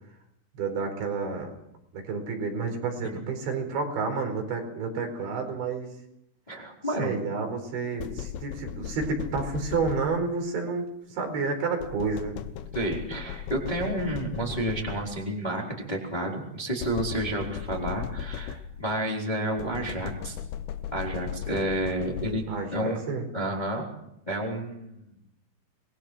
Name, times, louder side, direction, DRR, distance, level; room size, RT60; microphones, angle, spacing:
voice 1, 0.6-1.5 1.9-5.9 7.0-12.4 22.5-23.3, right 4 dB, 65° right, 4 dB, 6.7 m, -30 dB
voice 2, 6.5-7.2 12.7-20.4 20.9-22.4 22.7-23.0 23.3-23.8 24.3-25.1, right 1 dB, 10° left, -1 dB, 3.4 m, -30 dB
sound 1, 8.0-10.5 11.8-15.4 16.8-19.0 19.6-22.7, left 9 dB, 70° left, 2.9 m, -37 dB
27.0 x 22.0 x 6.2 m, 0.80 s
omnidirectional pair, 5.6 m